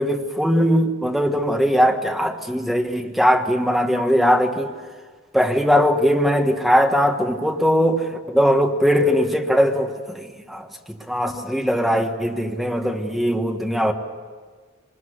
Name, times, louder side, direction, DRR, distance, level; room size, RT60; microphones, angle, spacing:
voice 1, 0.0-4.7 5.3-10.7 11.1-13.9, equal, ahead, 3 dB, 1.5 m, -20 dB
24.0 x 20.5 x 8.2 m, 1.5 s
head